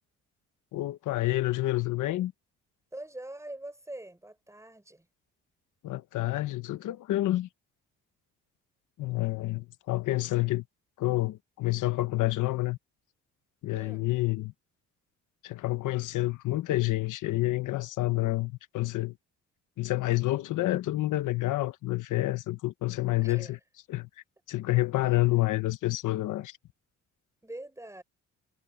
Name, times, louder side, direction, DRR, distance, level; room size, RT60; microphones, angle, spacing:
voice 1, 0.7-2.3 5.8-7.5 9.0-10.6 11.0-12.8 13.6-14.5 15.4-19.1 19.8-23.6 23.9-24.1 24.5-26.6, left 17 dB, 85° left, 1.2 m, -28 dB
voice 2, 2.9-5.1 13.7-14.1 23.2-23.6 25.0-25.1 27.4-28.0, right 1 dB, 10° right, 5.5 m, -43 dB
cardioid pair, 90°, 30 cm